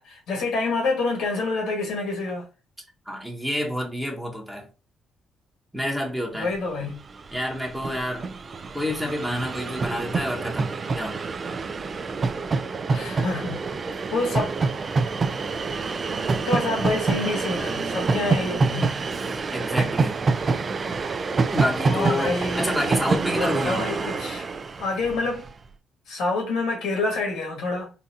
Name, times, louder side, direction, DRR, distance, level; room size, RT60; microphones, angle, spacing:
voice 1, 0.0-2.5 6.3-7.0 12.9-13.6 13.9-14.5 16.4-18.9 21.9-22.7 23.3-24.5 24.8-25.5 26.1-27.9, left 3 dB, 85° left, 1.5 m, -27 dB
voice 2, 3.1-4.7 5.7-6.5 7.3-8.3 8.7-11.2 19.5-20.2 21.5-23.9, equal, 5° right, 1.0 m, -28 dB
Train, 6.8-6.9 7.1-25.5, right 4 dB, 40° right, 0.4 m, -27 dB
3.9 x 2.4 x 2.6 m
cardioid pair, 90°, 0 cm